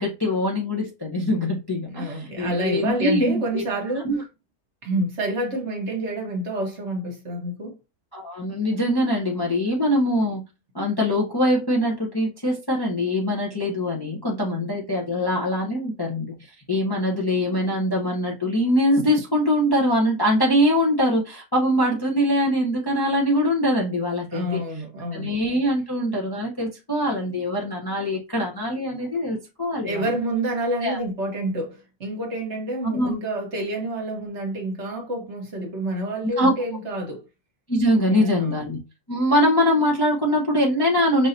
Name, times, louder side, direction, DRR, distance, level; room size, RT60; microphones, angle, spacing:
voice 1, 0.0-3.6 4.0-4.2 8.1-10.4 10.7-16.3 16.7-24.6 25.1-30.1 30.8-31.0 32.9-33.1 36.4-36.5 37.7-38.8 39.1-41.3, equal, 20° left, 0.7 m, -23 dB
voice 2, 1.9-4.1 4.8-7.7 24.3-25.3 29.8-37.2 38.1-38.6, right 1 dB, 50° right, 1.3 m, -28 dB
5.4 x 2.7 x 2.6 m
omnidirectional pair, 1.6 m